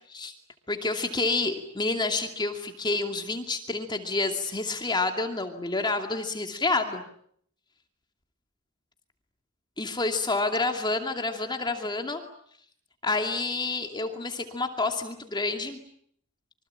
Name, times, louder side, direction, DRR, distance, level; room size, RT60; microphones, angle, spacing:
voice 1, 0.7-7.0 9.8-12.2 13.0-15.8, left 3 dB, 20° left, 5 dB, 2.6 m, -28 dB
27.0 x 24.5 x 8.9 m, 0.66 s
head